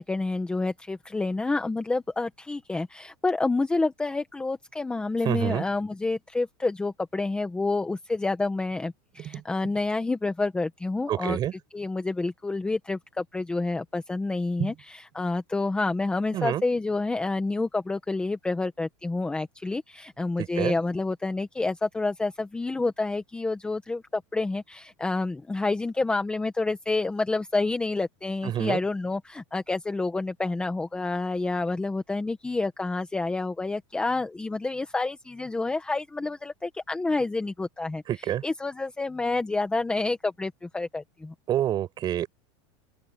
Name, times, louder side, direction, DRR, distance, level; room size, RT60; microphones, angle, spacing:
voice 1, 0.0-11.4 11.7-41.3, left 3 dB, 5° left, 1.1 m, -28 dB
voice 2, 5.3-5.6 9.2-9.4 11.1-11.5 14.6-14.7 16.3-16.6 20.4-20.8 28.4-28.8 38.1-38.4 41.5-42.3, right 11 dB, 25° right, 5.5 m, -27 dB
open air
supercardioid pair, 160°, 16 cm